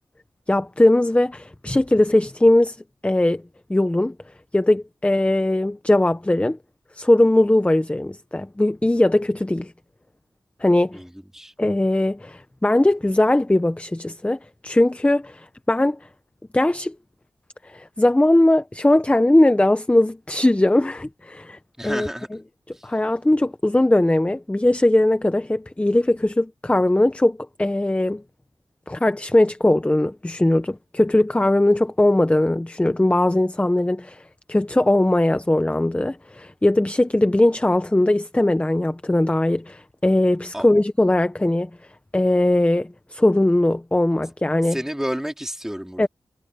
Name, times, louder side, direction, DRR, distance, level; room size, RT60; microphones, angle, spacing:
voice 1, 0.5-2.8 3.0-3.4 3.7-4.1 4.5-6.6 6.9-9.7 10.6-11.0 11.6-16.0 16.5-16.9 17.6-21.6 21.8-22.1 22.8-28.2 28.9-34.2 34.5-41.7 42.1-44.8 46.0-46.1, left 1 dB, 15° left, 0.8 m, -19 dB
voice 2, 10.9-11.5 21.8-22.3 22.7-22.9 40.5-40.7 44.6-46.1, equal, 5° right, 3.4 m, -30 dB
wide cardioid pair, 105°, 9 cm